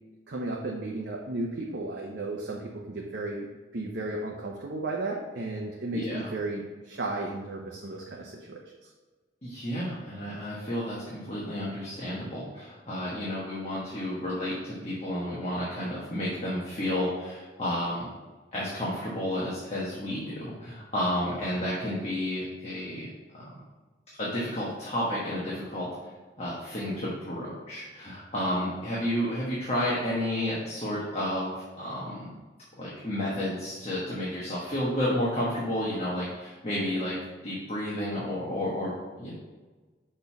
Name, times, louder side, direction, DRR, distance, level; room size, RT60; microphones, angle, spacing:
voice 1, 0.3-3.5 3.7-8.9, right 2 dB, 65° right, -1 dB, 0.7 m, -34 dB
voice 2, 5.9-6.3 9.4-18.1 18.5-23.5 24.2-25.9 26.4-32.3 32.8-39.3, left 1 dB, 35° left, -6 dB, 1.2 m, -31 dB
5.3 x 4.4 x 5.8 m, 1.3 s
head